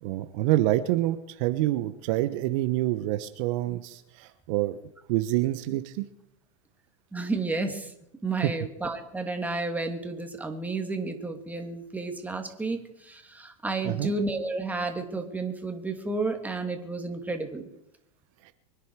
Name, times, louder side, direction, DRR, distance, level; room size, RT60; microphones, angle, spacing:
voice 1, 0.0-4.8 5.1-6.1 8.4-8.5 13.8-14.1 18.4-18.5, right 15 dB, 60° right, 10 dB, 1.1 m, -27 dB
voice 2, 7.1-7.9 8.2-17.6, right 3 dB, 10° right, 4 dB, 2.6 m, -31 dB
24.0 x 10.5 x 4.8 m, 0.83 s
hypercardioid pair, 105°, 19 cm